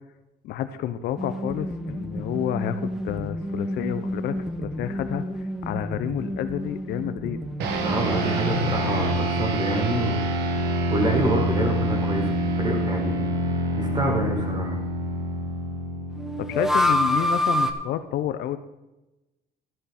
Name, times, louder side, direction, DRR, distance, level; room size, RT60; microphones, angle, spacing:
voice 1, 0.4-5.2 5.6-7.4 16.4-18.6, left 11 dB, 75° left, 10 dB, 0.9 m, -29 dB
sound 1, 1.2-9.0 9.2-9.3 16.2-17.7, left 1 dB, ahead, 1.4 m, -28 dB
sound 2, 7.6-17.2, right 1 dB, 85° right, 2.2 m, -26 dB
voice 2, 7.8-10.2 10.9-13.2 13.5-14.8, right 1 dB, 25° right, 1 dB, 4.8 m, -27 dB
13.0 x 10.5 x 4.3 m, 1.0 s
cardioid pair, 110°, 17 cm